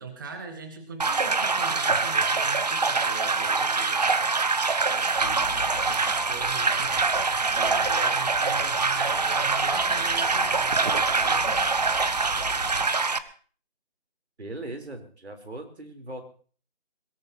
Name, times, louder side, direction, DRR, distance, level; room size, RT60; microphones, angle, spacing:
voice 1, 0.0-4.4 4.9-10.8 11.1-11.6, right 4 dB, 20° right, 6 dB, 1.2 m, -40 dB
sound 1, 1.0-13.2, right 4 dB, 40° right, 0.7 m, -24 dB
voice 2, 1.9-2.2 14.4-16.2, right 2 dB, 85° right, 5 dB, 3.9 m, -39 dB
sound 2, 5.2-12.9, left 4 dB, 30° left, 0.9 m, -42 dB
23.0 x 17.5 x 3.0 m, 0.42 s
figure-of-eight pair, 165°, 32 cm